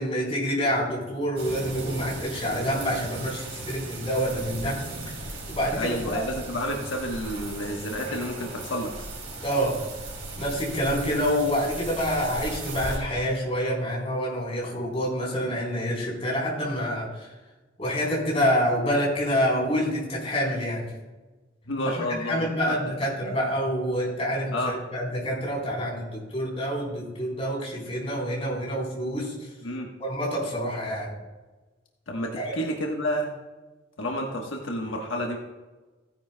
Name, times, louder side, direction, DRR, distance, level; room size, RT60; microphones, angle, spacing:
voice 1, 0.0-4.8 5.0-6.3 9.4-9.8 10.4-17.3 17.8-20.9 21.9-29.5 30.0-31.1 32.4-32.5, equal, 30° left, -4 dB, 3.8 m, -27 dB
sound 1, 1.4-13.0, right 2 dB, 75° right, 3.3 m, -37 dB
voice 2, 5.8-8.9 21.6-22.5 23.2-23.4 24.5-24.7 29.6-29.9 32.1-33.3 34.0-35.4, equal, 80° left, 0 dB, 1.2 m, -30 dB
15.5 x 10.0 x 2.2 m, 1.2 s
head